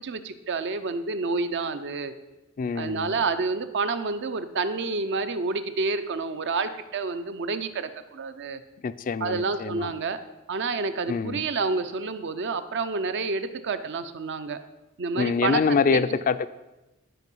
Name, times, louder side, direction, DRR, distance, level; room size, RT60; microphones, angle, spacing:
voice 1, 0.0-2.1 2.8-8.6 9.2-10.2 10.5-14.6 15.0-16.0, right 4 dB, 55° right, 11 dB, 0.6 m, -29 dB
voice 2, 2.6-3.1 8.8-9.9 11.1-11.4 15.2-16.5, left 5 dB, 40° left, 14 dB, 0.3 m, -25 dB
11.0 x 4.9 x 5.4 m, 1.0 s
head